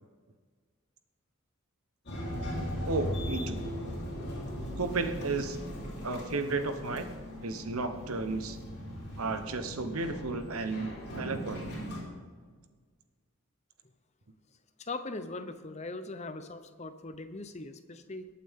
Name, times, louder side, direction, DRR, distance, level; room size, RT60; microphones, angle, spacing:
sound 1, 2.1-12.0, equal, 50° left, 3.7 m, -38 dB
voice 1, 2.8-3.6 4.8-5.6 6.0-7.1 7.4-8.6 9.2-11.7, right 3 dB, 85° right, 8 dB, 1.1 m, -33 dB
voice 2, 14.8-18.3, left 2 dB, 30° left, 9 dB, 0.7 m, -40 dB
21.5 x 8.6 x 3.7 m, 1.5 s
head